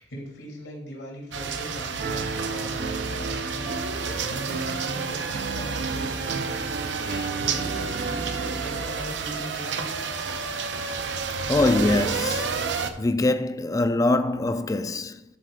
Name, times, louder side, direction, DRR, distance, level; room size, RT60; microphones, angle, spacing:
voice 1, 0.0-6.7 6.9-9.9, equal, 90° left, 2.9 m, -39 dB
sound 1, 1.3-12.9, right 5 dB, 80° right, 0.7 m, -30 dB
Piano, 2.0-8.8, right 4 dB, 50° right, 0.4 m, -35 dB
voice 2, 4.2-4.6 7.1-7.3 11.5-12.5 13.0-15.4, left 2 dB, 20° left, 0.4 m, -24 dB
10.5 x 4.3 x 4.9 m
head